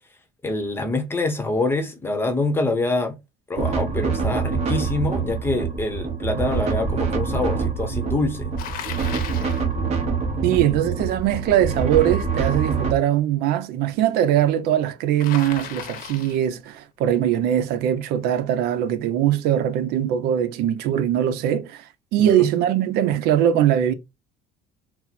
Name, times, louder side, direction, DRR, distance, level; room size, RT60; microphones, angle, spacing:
voice 1, 0.4-3.2 3.5-8.5 10.4-10.7 22.2-22.5, left 2 dB, 15° left, 0.8 m, -25 dB
sound 1, 3.6-12.9, right 5 dB, 40° right, 1.0 m, -25 dB
Bicycle, 8.6-9.7 15.2-16.5, left 8 dB, 60° left, 0.9 m, -35 dB
voice 2, 10.4-23.9, right 11 dB, 70° right, 0.6 m, -21 dB
4.3 x 2.1 x 4.1 m
cardioid pair, 150°, 17 cm